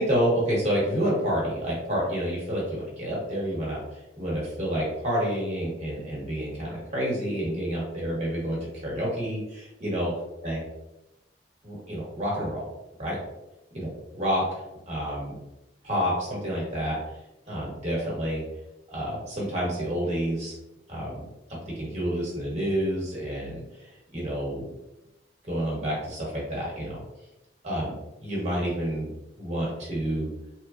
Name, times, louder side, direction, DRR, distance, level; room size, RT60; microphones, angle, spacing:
voice 1, 0.0-3.8 4.2-10.1 10.4-10.6 11.6-12.7 13.0-13.2 13.7-13.9 14.1-14.4 14.9-15.4 15.8-17.0 17.5-18.4 18.9-20.5 20.9-21.2 21.5-24.7 25.4-27.0 27.6-27.9 28.2-29.1 29.4-30.3, equal, 40° right, -4 dB, 1.1 m, -29 dB
3.1 x 2.2 x 2.4 m, 0.92 s
head